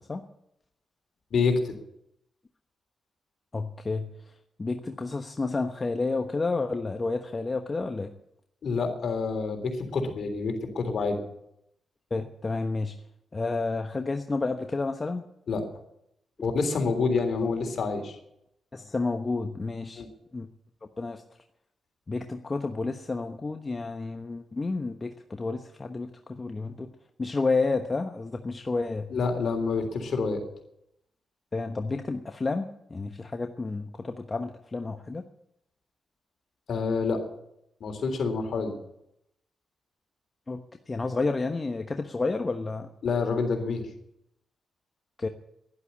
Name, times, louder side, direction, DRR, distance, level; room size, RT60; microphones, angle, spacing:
voice 1, 1.3-1.7 8.6-11.2 15.5-15.6 16.4-18.1 20.0-20.1 29.1-30.4 36.7-37.2 37.8-38.7 43.0-43.8, left 4 dB, 65° left, 4 dB, 3.5 m, -27 dB
voice 2, 3.5-4.1 4.6-8.1 12.1-12.9 13.3-15.3 18.7-20.0 20.3-20.5 21.0-21.2 22.1-26.9 27.2-29.1 31.5-35.2 40.5-40.6 40.9-42.9 45.2-45.3, left 3 dB, 35° left, 6 dB, 1.2 m, -30 dB
11.5 x 11.5 x 9.8 m, 0.78 s
cardioid pair, 60°, 0 cm